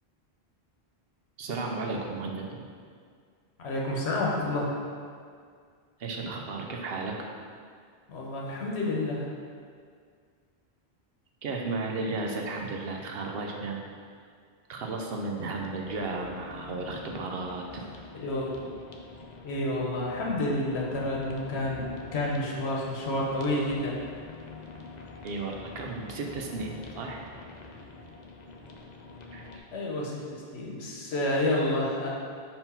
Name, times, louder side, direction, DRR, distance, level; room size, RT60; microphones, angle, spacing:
voice 1, 1.4-2.6 6.0-7.3 11.4-13.8 14.7-17.8 25.2-27.2 29.3-29.6, right 3 dB, 65° right, 1 dB, 0.9 m, -34 dB
voice 2, 3.6-4.7 8.1-9.3 18.1-18.7 19.4-21.9 22.1-24.0 29.7-32.1, left 1 dB, 80° left, -3 dB, 1.1 m, -29 dB
sound 1, 15.8-29.6, left 3 dB, 50° left, 0.6 m, -45 dB
4.6 x 3.8 x 5.5 m, 2.1 s
omnidirectional pair, 1.1 m